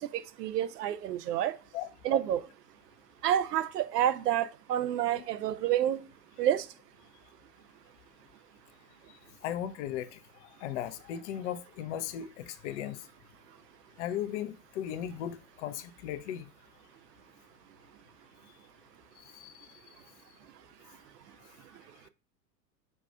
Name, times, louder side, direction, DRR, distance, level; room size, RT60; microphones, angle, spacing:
voice 1, 0.0-1.6 2.0-2.5 3.2-6.0 6.4-6.7, right 11 dB, 70° right, 0.5 m, -29 dB
voice 2, 9.4-13.0 14.0-16.5 19.2-19.7, left 10 dB, 45° left, 0.5 m, -37 dB
5.2 x 2.4 x 3.3 m
figure-of-eight pair, 90°, 50 cm